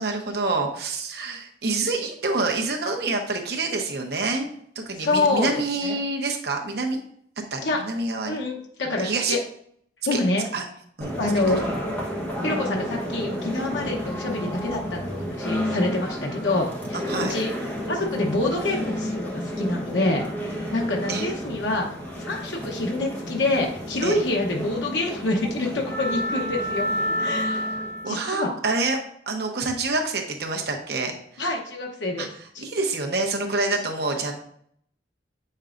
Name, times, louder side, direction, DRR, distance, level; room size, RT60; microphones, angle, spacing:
voice 1, 0.0-4.5 4.7-7.0 7.5-8.4 8.9-9.4 10.1-10.2 10.5-10.6 11.0-11.1 11.6-11.7 13.8-13.9 16.9-17.3 21.1-21.3 24.0-24.2 28.0-31.4 32.2-34.3, right 3 dB, 60° right, 2 dB, 0.9 m, -27 dB
voice 2, 4.9-6.0 7.6-7.8 8.3-9.4 10.1-10.4 11.2-11.7 12.4-17.5 17.9-21.9 22.3-26.9 27.2-27.7 28.1-28.6 31.4-32.3 32.5-32.7, left 2 dB, 80° left, 0 dB, 0.9 m, -26 dB
sound 1, 11.0-28.2, equal, 10° left, 1.0 m, -30 dB
7.9 x 5.4 x 2.5 m, 0.65 s
head